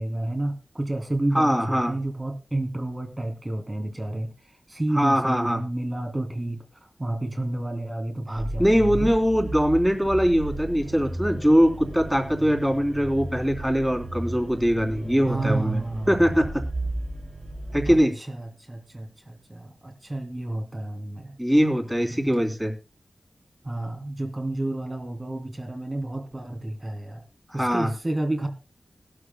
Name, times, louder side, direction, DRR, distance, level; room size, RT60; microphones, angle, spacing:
voice 1, 0.0-6.6 7.0-9.1 15.3-16.5 17.8-21.4 22.1-22.5 23.6-27.2 27.5-28.5, right 1 dB, 30° right, 5 dB, 2.9 m, -31 dB
voice 2, 1.3-1.9 4.9-5.6 8.6-15.8 16.1-16.5 17.7-18.1 21.4-22.7 27.6-27.9, equal, 5° right, 3 dB, 3.3 m, -22 dB
sound 1, 8.3-17.9, right 2 dB, 80° right, 3.4 m, -33 dB
18.5 x 12.5 x 2.2 m, 0.30 s
wide cardioid pair, 55°, 0 cm